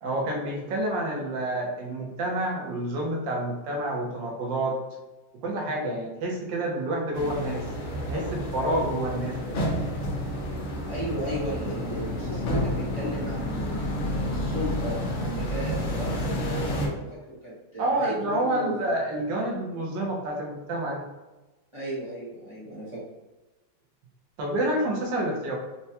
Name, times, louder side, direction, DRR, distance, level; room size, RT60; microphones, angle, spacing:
voice 1, 0.0-4.8 5.4-7.7 8.1-9.7 17.8-21.0 24.4-25.6, right 1 dB, 80° right, -1 dB, 1.5 m, -28 dB
sound 1, 7.1-16.9, equal, 60° left, 0.8 m, -30 dB
voice 2, 10.9-18.9 21.7-23.0, equal, 25° right, -9 dB, 0.7 m, -35 dB
4.4 x 2.2 x 2.8 m, 1.1 s
omnidirectional pair, 2.0 m